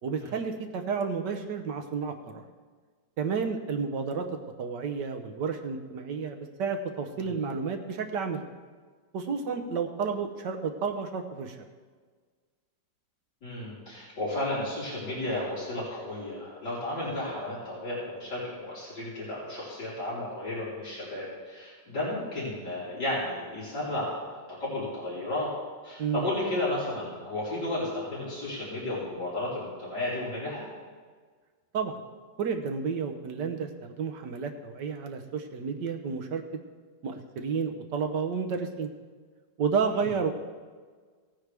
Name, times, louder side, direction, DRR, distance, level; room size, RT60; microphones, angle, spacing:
voice 1, 0.0-2.4 3.2-4.3 4.6-8.4 9.1-11.6 26.0-26.3 31.7-32.0 32.4-36.4 37.0-38.9 39.6-40.3, right 5 dB, 70° right, 5 dB, 1.5 m, -31 dB
voice 2, 7.2-7.5 13.4-24.2 24.5-25.5 25.8-30.6 39.8-40.0, left 1 dB, 65° left, -9 dB, 4.5 m, -33 dB
17.0 x 9.5 x 3.4 m, 1.5 s
omnidirectional pair, 2.0 m